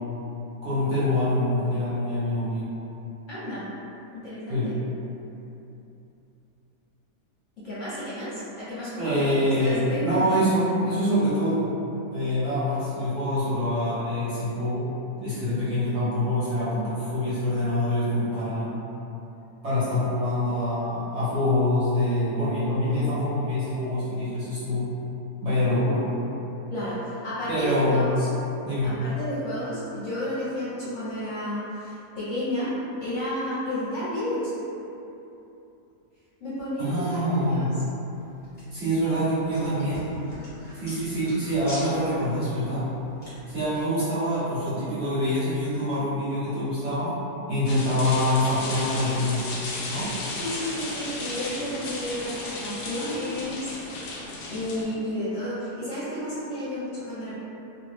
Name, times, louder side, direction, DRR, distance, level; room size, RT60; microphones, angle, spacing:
voice 1, 0.6-2.7 4.5-4.7 9.0-11.7 12.1-14.9 15.2-18.8 19.6-24.9 25.4-26.1 27.5-28.1 28.6-29.0 36.8-37.7 38.7-40.1 40.7-42.8 43.5-47.1 47.5-49.4 49.9-50.1, left 1 dB, 50° right, -12 dB, 1.0 m, -25 dB
voice 2, 3.3-3.7 4.1-4.7 7.6-10.2 26.7-28.3 28.8-32.7 33.0-34.5 36.4-37.7 50.4-53.7 54.5-57.4, equal, 55° left, -11 dB, 1.0 m, -32 dB
sound 1, 38.1-43.8, equal, 25° left, 1.3 m, -45 dB
sound 2, 47.7-54.8, left 2 dB, 70° left, 0.7 m, -34 dB
2.8 x 2.4 x 3.3 m, 2.9 s
omnidirectional pair, 1.7 m